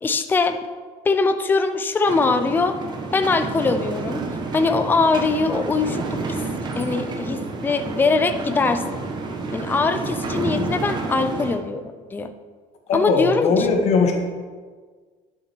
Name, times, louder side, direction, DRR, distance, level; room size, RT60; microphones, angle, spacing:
voice 1, 0.0-0.6 1.0-2.8 3.1-4.2 4.5-6.4 6.8-9.0 9.5-12.3 12.9-13.7, left 4 dB, 15° left, 8 dB, 0.5 m, -22 dB
sound 1, 2.1-11.6, right 3 dB, 30° right, 1.2 m, -29 dB
voice 2, 12.9-14.1, left 4 dB, 45° left, 3 dB, 1.7 m, -19 dB
10.5 x 7.9 x 4.6 m, 1.5 s
cardioid pair, 155°, 15 cm